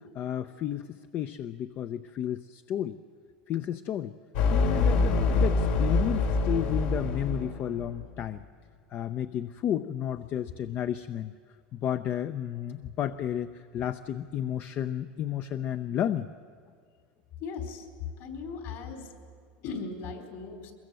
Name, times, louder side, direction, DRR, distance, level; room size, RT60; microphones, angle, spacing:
voice 1, 0.0-3.0 3.5-4.2 4.5-8.4 8.9-11.3 11.7-16.3, left 10 dB, 40° left, 11 dB, 0.6 m, -32 dB
sound 1, 4.3-8.0, left 3 dB, 75° left, 2.8 m, -25 dB
voice 2, 17.4-17.9 18.2-19.1 19.6-20.7, left 4 dB, 60° left, 5 dB, 4.3 m, -38 dB
23.0 x 22.0 x 7.7 m, 2.1 s
supercardioid pair, 135°, 5 cm